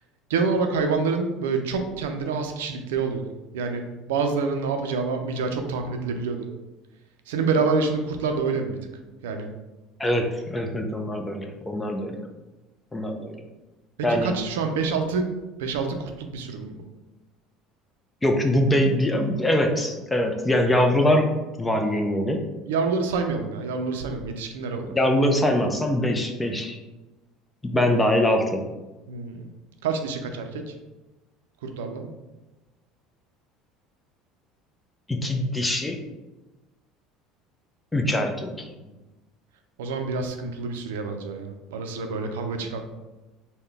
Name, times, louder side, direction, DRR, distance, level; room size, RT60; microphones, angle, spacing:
voice 1, 0.3-3.2 3.5-6.5 7.3-8.8 9.2-9.5 14.0-15.3 15.6-16.8 22.7-24.9 29.1-29.5 29.8-30.7 31.6-32.1 38.7-38.9 39.8-42.8, right 4 dB, 85° right, 5 dB, 0.4 m, -27 dB
voice 2, 10.0-12.2 12.9-13.4 14.0-14.3 18.2-21.3 21.6-22.4 24.9-26.8 27.6-28.7 35.1-36.0 37.9-38.7, left 1 dB, 15° left, 3 dB, 0.5 m, -23 dB
3.7 x 2.2 x 3.3 m, 1.1 s
supercardioid pair, 85°, 0 cm